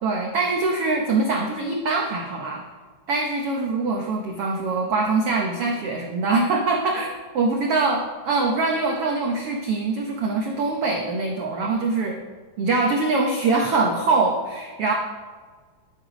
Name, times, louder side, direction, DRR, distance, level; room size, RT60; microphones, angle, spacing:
voice 1, 0.0-2.6 3.1-12.2 12.6-14.9, right 3 dB, 90° right, 0 dB, 1.2 m, -23 dB
12.5 x 8.2 x 5.1 m, 1.5 s
omnidirectional pair, 4.2 m